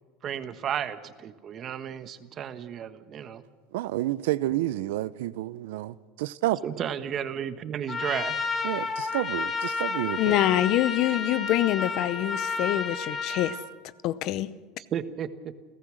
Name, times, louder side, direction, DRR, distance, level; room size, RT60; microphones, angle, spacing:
voice 1, 0.2-3.4 6.6-8.4 14.8-15.5, right 9 dB, 40° right, 1.3 m, -33 dB
voice 2, 3.7-6.6 8.6-10.4, right 15 dB, 85° right, 0.6 m, -30 dB
Trumpet, 7.9-13.6, left 4 dB, 25° left, 2.5 m, -31 dB
voice 3, 10.2-13.5 14.0-14.5, left 14 dB, 55° left, 0.8 m, -25 dB
30.0 x 14.5 x 6.5 m
supercardioid pair, 125°, 0 cm